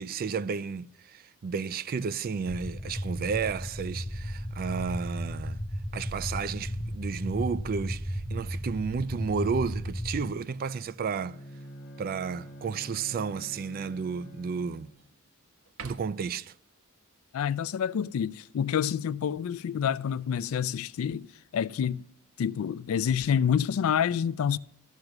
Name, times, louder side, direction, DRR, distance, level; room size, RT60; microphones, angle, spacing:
voice 1, 0.0-5.6 5.9-11.4 12.0-14.9 15.8-16.5, right 5 dB, 40° right, 0.3 m, -32 dB
sound 1, 2.5-10.2, equal, 5° left, 0.6 m, -34 dB
Bowed string instrument, 11.0-15.1, equal, 50° left, 0.8 m, -47 dB
sound 2, 12.7-13.1 13.7-13.8 14.3-15.1 15.6-16.4 19.9-21.3 22.7-23.2, right 5 dB, 75° right, 0.9 m, -51 dB
voice 2, 17.3-21.3 21.5-22.1 22.4-24.6, left 8 dB, 65° left, 0.3 m, -28 dB
13.0 x 5.9 x 6.5 m
head